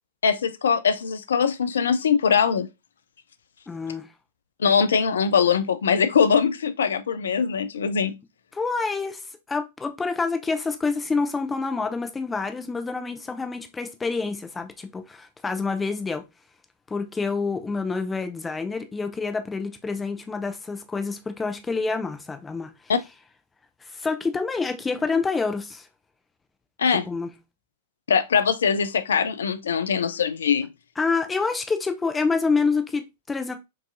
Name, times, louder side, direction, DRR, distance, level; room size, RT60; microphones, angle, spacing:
voice 1, 0.2-2.7 4.6-8.1 22.9-23.0 26.8-27.0 28.1-30.7, left 6 dB, 70° left, 0.4 m, -22 dB
voice 2, 3.7-4.1 8.5-9.2 9.5-16.2 16.9-22.7 23.9-25.9 26.9-27.3 31.0-33.5, left 4 dB, 15° left, 0.6 m, -27 dB
4.6 x 2.7 x 2.5 m
figure-of-eight pair, 100°, 0 cm